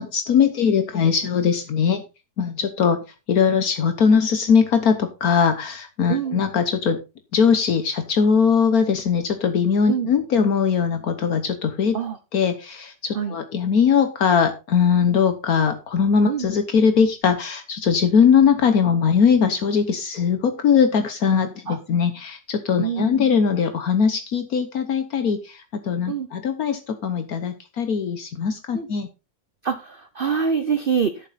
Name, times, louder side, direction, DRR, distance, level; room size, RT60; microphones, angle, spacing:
voice 1, 0.0-2.0 2.4-3.0 3.3-7.0 7.3-12.0 12.3-29.1, left 6 dB, 70° left, 8 dB, 1.5 m, -20 dB
voice 2, 6.1-6.4 9.9-10.1 11.9-12.2 13.1-13.4 16.3-16.5 21.7-21.8 22.8-23.3 26.1-26.3 28.7-28.9 29.6-31.3, right 7 dB, 40° right, 9 dB, 0.9 m, -25 dB
12.5 x 7.4 x 4.2 m, 0.28 s
omnidirectional pair, 1.6 m